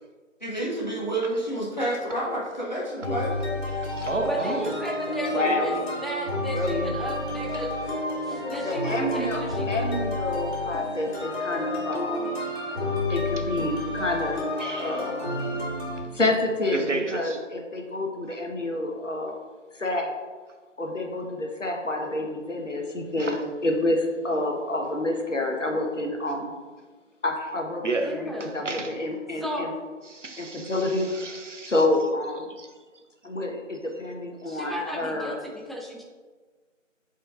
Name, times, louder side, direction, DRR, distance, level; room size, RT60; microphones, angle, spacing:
voice 1, 0.4-3.3, right 1 dB, 35° left, -4 dB, 1.0 m, -29 dB
sound 1, 3.0-16.0, left 1 dB, 55° left, 1.8 m, -30 dB
voice 2, 3.7-4.8 7.5-7.6 14.6-15.1 16.7-17.4 23.2-23.4 27.8-28.9 30.1-31.7 32.6-32.7, right 3 dB, 65° right, 4 dB, 0.8 m, -32 dB
voice 3, 4.3-5.8 6.0-7.7 8.2-10.0 28.1-28.6 29.4-29.7 34.5-36.0, equal, ahead, 0 dB, 0.4 m, -34 dB
voice 4, 5.3-5.7 6.5-6.9 8.6-9.4 9.7-12.4 13.1-15.3 16.1-19.4 19.7-20.1 20.8-26.5 27.2-29.7 30.4-31.1 31.7-32.5 33.2-35.4, left 2 dB, 70° left, 2 dB, 1.2 m, -28 dB
8.4 x 4.4 x 2.5 m, 1.4 s
figure-of-eight pair, 170°, 39 cm